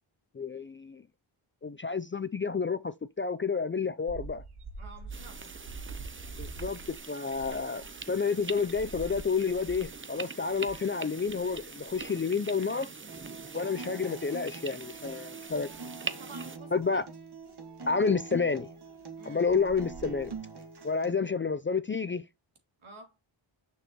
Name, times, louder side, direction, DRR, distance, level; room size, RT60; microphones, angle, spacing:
voice 1, 0.3-1.0 1.6-4.4 6.4-6.8 7.1-12.9 13.5-15.7 16.7-17.1 17.9-18.7 19.3-20.3 20.8-22.2, left 5 dB, 25° left, 0.4 m, -30 dB
sound 1, 4.1-10.1 10.5-10.9 11.2-12.2 12.8-15.1 15.5-15.7 16.8-16.9 19.0-19.1 19.5-20.4, right 3 dB, 85° right, 1.6 m, -46 dB
voice 2, 4.8-5.5 16.2-17.0 19.2-19.5 22.8-23.2, right 3 dB, 70° right, 2.7 m, -50 dB
sound 2, 5.1-16.6, right 4 dB, 25° right, 0.7 m, -43 dB
Acoustic guitar, 13.1-21.1, right 4 dB, 50° right, 1.8 m, -44 dB
6.5 x 6.5 x 2.9 m
cardioid pair, 65°, 49 cm